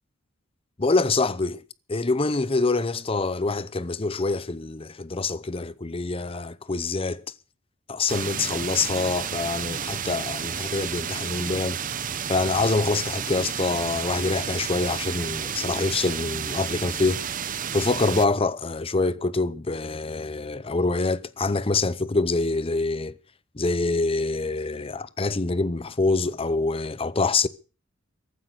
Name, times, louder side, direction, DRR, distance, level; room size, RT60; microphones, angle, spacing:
voice 1, 0.8-1.6 1.9-7.2 7.9-11.8 12.3-17.2 17.7-23.2 23.5-27.5, left 3 dB, 30° left, 0.7 m, -25 dB
sound 1, 8.1-18.3, right 8 dB, 40° right, 0.8 m, -31 dB
15.0 x 12.0 x 6.7 m
head